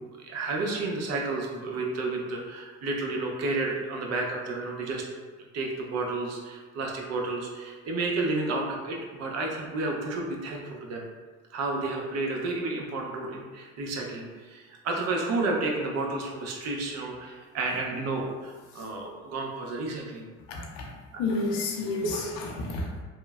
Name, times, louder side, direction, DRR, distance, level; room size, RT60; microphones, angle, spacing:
voice 1, 0.0-5.1 5.4-11.0 11.5-20.3 21.1-21.2, right 3 dB, 60° right, 0 dB, 0.6 m, -31 dB
voice 2, 20.5-20.9 21.2-23.0, left 3 dB, 85° left, -1 dB, 0.5 m, -31 dB
2.9 x 2.1 x 2.3 m, 1.4 s
cardioid pair, 100°, 29 cm